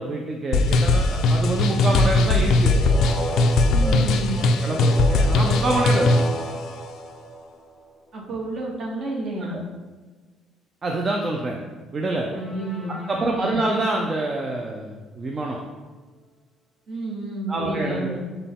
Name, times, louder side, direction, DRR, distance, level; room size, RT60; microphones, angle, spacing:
voice 1, 0.0-2.7 3.8-4.0 4.3-6.1 9.5-9.6 10.8-11.6 11.9-12.3 13.1-15.6 17.5-18.2, right 2 dB, 25° right, 0 dB, 0.3 m, -26 dB
sound 1, 0.5-6.4, left 2 dB, 60° left, 0.3 m, -19 dB
sound 2, 2.6-7.9 12.3-13.9, equal, 20° left, 0.7 m, -32 dB
voice 2, 3.7-4.4 8.1-9.6 12.3-13.6 16.9-18.2, right 2 dB, 40° right, -3 dB, 1.0 m, -30 dB
5.8 x 2.2 x 3.5 m, 1.3 s
cardioid pair, 160°, 0 cm